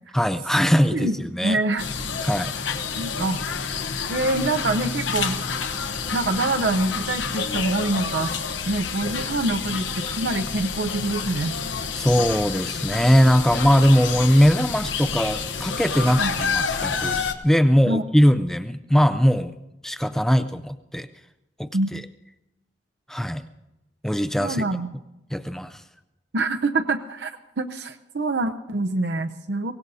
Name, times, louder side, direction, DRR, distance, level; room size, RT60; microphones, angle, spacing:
voice 1, 0.1-1.6 2.2-2.5 11.9-19.5 19.8-21.1 21.6-22.0 23.1-23.4 24.0-24.7 25.3-25.8, equal, ahead, 10 dB, 0.4 m, -20 dB
voice 2, 0.9-1.9 3.0-3.4 4.1-5.4 6.1-8.4 8.7-11.5 16.2-16.3 17.9-18.0 21.7-21.9 24.4-24.9 26.3-29.7, right 2 dB, 70° right, 6 dB, 0.6 m, -25 dB
sound 1, 1.8-17.3, left 5 dB, 85° left, 1.0 m, -29 dB
23.5 x 18.0 x 2.7 m, 0.94 s
head